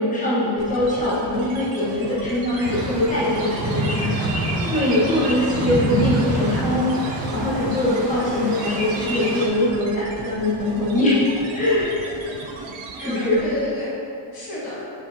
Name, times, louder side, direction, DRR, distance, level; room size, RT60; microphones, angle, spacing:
voice 1, 0.0-4.1 4.7-11.2 11.5-12.0 13.0-13.4, left 1 dB, 15° left, -9 dB, 1.4 m, -22 dB
sound 1, 0.6-13.7, right 3 dB, 80° right, 0.8 m, -36 dB
sound 2, 2.6-9.5, right 1 dB, 50° right, 1.2 m, -27 dB
voice 2, 3.6-4.4 5.0-5.3 7.9-8.2 13.0-13.9 14.3-14.8, left 1 dB, 50° left, -6 dB, 1.5 m, -33 dB
6.2 x 5.5 x 2.8 m, 2.5 s
cardioid pair, 145°, 46 cm